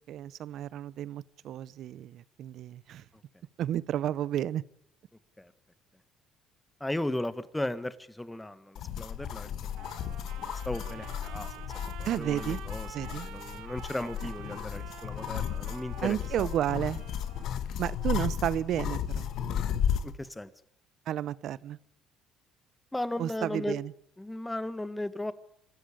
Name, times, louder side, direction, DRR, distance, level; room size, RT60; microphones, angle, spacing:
voice 1, 0.1-3.0 3.6-4.6 12.0-12.6 12.9-13.3 16.0-17.0 17.8-19.3 21.1-21.8 23.2-23.9, right 11 dB, 65° right, 20 dB, 0.7 m, -32 dB
voice 2, 6.8-16.5 18.1-18.2 20.0-20.5 22.9-23.8 24.2-25.3, left 1 dB, 10° left, 14 dB, 1.4 m, -36 dB
sound 1, 8.8-20.1, left 9 dB, 65° left, 1.6 m, -34 dB
Trumpet, 9.8-17.6, right 13 dB, 85° right, 1.4 m, -48 dB
26.5 x 13.0 x 8.7 m, 0.70 s
supercardioid pair, 85°, 0 cm